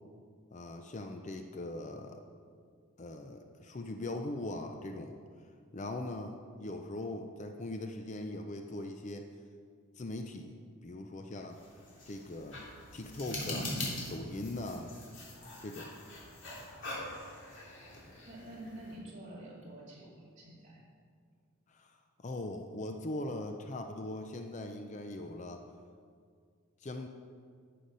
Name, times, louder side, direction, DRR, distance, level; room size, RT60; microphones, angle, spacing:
voice 1, 0.5-2.2 3.0-5.2 5.7-9.3 10.0-11.6 12.1-13.8 14.1-14.9 15.6-15.9 21.7-25.6 26.8-27.1, left 1 dB, 30° left, 5 dB, 0.4 m, -40 dB
sound 1, 11.5-19.0, left 1 dB, 55° left, 2.7 m, -42 dB
voice 2, 18.2-20.8, right 1 dB, 30° right, -5 dB, 2.4 m, -48 dB
10.0 x 7.6 x 5.4 m, 2.1 s
head